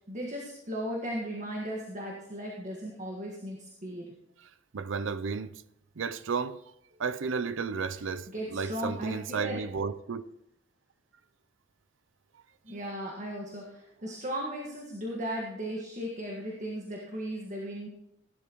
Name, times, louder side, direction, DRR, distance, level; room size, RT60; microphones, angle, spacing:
voice 1, 0.1-4.1 8.3-9.6 12.6-17.9, equal, 40° right, 1.6 m, -36 dB
voice 2, 4.4-5.6 6.0-6.6 7.0-10.3 12.7-12.8, right 5 dB, 85° right, 0.5 m, -33 dB
16.5 x 12.0 x 3.1 m
head